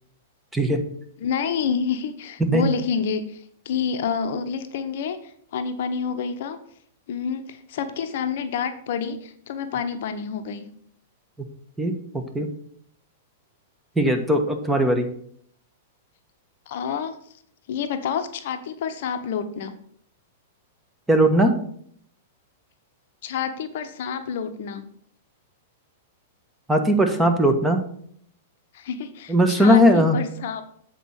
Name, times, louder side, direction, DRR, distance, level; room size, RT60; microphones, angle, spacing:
voice 1, 1.2-6.6 7.1-10.7 16.7-17.2 17.7-19.7 23.2-24.8 28.7-30.6, left 6 dB, 60° left, 8 dB, 0.8 m, -28 dB
voice 2, 13.9-15.1 21.1-21.6 26.7-27.8 29.3-30.2, equal, 5° right, 5 dB, 1.3 m, -18 dB
8.1 x 4.4 x 6.3 m, 0.63 s
figure-of-eight pair, 105°, 0 cm